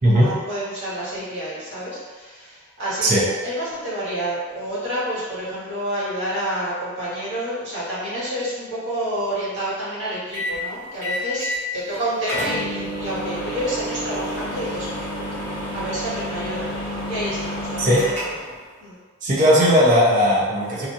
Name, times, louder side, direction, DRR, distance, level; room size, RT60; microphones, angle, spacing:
voice 1, 0.1-14.9 15.7-18.0 18.8-19.0, right 1 dB, 55° right, -11 dB, 1.5 m, -29 dB
sound 1, 10.3-10.6 11.0-11.6 11.9-12.0 12.3-18.6, equal, 10° left, 0.8 m, -29 dB
voice 2, 19.2-20.9, equal, 35° right, -7 dB, 0.7 m, -17 dB
3.0 x 2.5 x 2.6 m, 1.4 s
head